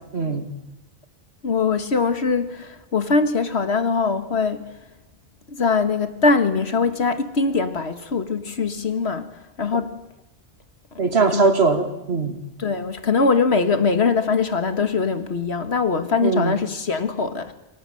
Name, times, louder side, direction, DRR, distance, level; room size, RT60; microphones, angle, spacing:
voice 1, 0.1-0.5 11.0-12.4 16.2-16.5, right 4 dB, 75° right, 6 dB, 2.7 m, -20 dB
voice 2, 1.4-4.6 5.5-9.3 9.6-9.9 11.0-11.6 12.6-17.5, left 4 dB, 85° left, 9 dB, 1.9 m, -22 dB
28.5 x 25.0 x 7.8 m, 0.95 s
omnidirectional pair, 1.1 m